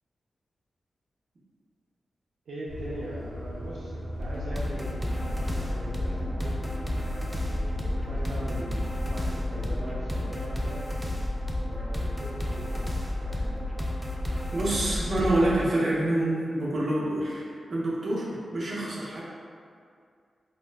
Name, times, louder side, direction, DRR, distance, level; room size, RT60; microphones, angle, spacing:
voice 1, 2.5-6.6 7.2-10.9 11.7-13.7, right 1 dB, 85° right, -7 dB, 0.4 m, -41 dB
sound 1, 2.7-9.5, equal, 20° right, 1.0 m, -37 dB
sound 2, 2.8-10.2, left 1 dB, 65° left, 0.4 m, -45 dB
sound 3, 4.2-15.5, left 1 dB, 5° right, 0.3 m, -31 dB
voice 2, 14.5-19.2, right 1 dB, 50° right, -7 dB, 0.7 m, -27 dB
2.9 x 2.1 x 3.3 m, 2.3 s
wide cardioid pair, 115°, 0 cm